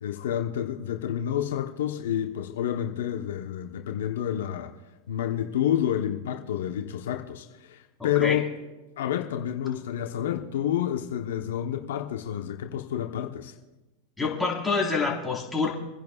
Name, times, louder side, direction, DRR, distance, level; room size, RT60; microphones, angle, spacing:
voice 1, 0.0-4.7 5.1-8.4 9.0-13.5, left 10 dB, 75° left, 4 dB, 1.0 m, -29 dB
voice 2, 8.0-8.4 14.2-15.7, left 4 dB, 5° left, -4 dB, 4.2 m, -27 dB
28.5 x 10.5 x 2.4 m, 1.1 s
hypercardioid pair, 105°, 0 cm